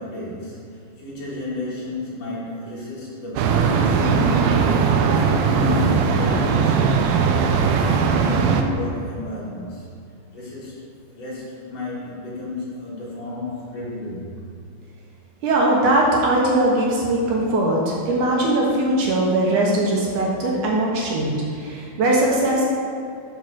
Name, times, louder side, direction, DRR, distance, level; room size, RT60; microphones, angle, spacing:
voice 1, 0.0-4.8 5.0-6.9 8.0-14.5, left 2 dB, 50° left, -7 dB, 2.6 m, -32 dB
sound 1, 3.4-8.6, right 5 dB, 90° right, 2.6 m, -19 dB
voice 2, 15.4-22.7, right 1 dB, 65° right, -3 dB, 2.2 m, -20 dB
8.1 x 4.7 x 6.3 m, 2.4 s
omnidirectional pair, 4.4 m